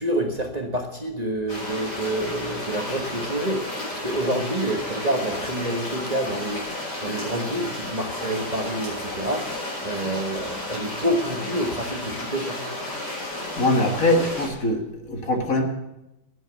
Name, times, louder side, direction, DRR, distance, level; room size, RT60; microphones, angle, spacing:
voice 1, 0.0-3.7 3.9-9.5 9.8-12.6, right 1 dB, 25° right, 3 dB, 1.4 m, -28 dB
sound 1, 1.5-14.5, left 1 dB, 70° left, 7.1 m, -32 dB
voice 2, 13.6-15.6, left 1 dB, 50° left, 5 dB, 1.9 m, -22 dB
11.0 x 10.5 x 8.1 m, 0.94 s
omnidirectional pair, 1.9 m